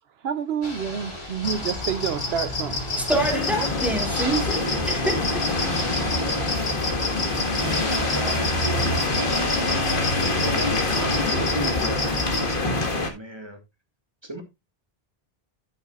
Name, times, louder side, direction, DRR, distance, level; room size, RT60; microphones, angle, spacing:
voice 1, 0.2-2.9, right 8 dB, 80° right, 0.9 m, -28 dB
Ocean / Boat Water vehicle, 0.6-11.5, left 1 dB, 30° left, 3.6 m, -36 dB
sound 1, 1.4-12.5, left 2 dB, 75° left, 3.1 m, -30 dB
voice 2, 3.0-5.5, right 1 dB, ahead, 2.5 m, -27 dB
sound 2, 3.1-13.1, left 2 dB, 55° left, 1.8 m, -25 dB
voice 3, 8.0-13.6 14.2-14.4, right 1 dB, 25° right, 2.0 m, -37 dB
11.0 x 8.5 x 2.4 m
omnidirectional pair, 1.0 m